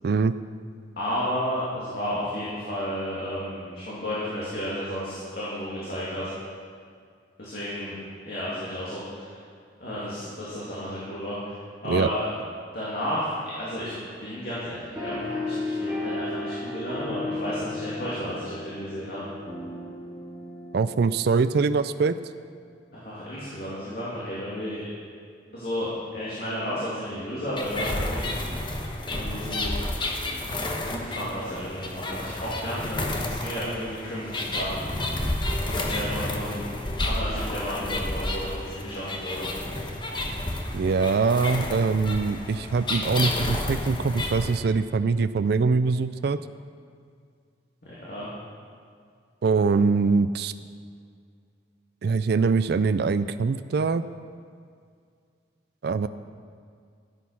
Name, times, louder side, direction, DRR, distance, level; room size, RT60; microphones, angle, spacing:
voice 1, 0.0-0.4 11.9-12.1 20.7-22.2 40.7-46.4 49.4-50.5 52.0-54.0 55.8-56.1, right 4 dB, 60° right, 12 dB, 0.4 m, -23 dB
voice 2, 1.0-6.3 7.4-8.0 8.2-9.3 9.8-11.5 11.8-12.3 12.7-13.9 14.2-19.2 22.9-24.8 25.5-28.3 29.1-29.7 30.9-34.8 35.6-36.7 37.0-39.5 47.8-48.3, equal, 55° left, -9 dB, 2.7 m, -32 dB
sound 1, 15.0-21.8, left 2 dB, 5° right, 3.9 m, -34 dB
sound 2, 27.6-44.6, left 1 dB, 25° left, 1.1 m, -31 dB
13.5 x 8.3 x 5.8 m, 2.2 s
head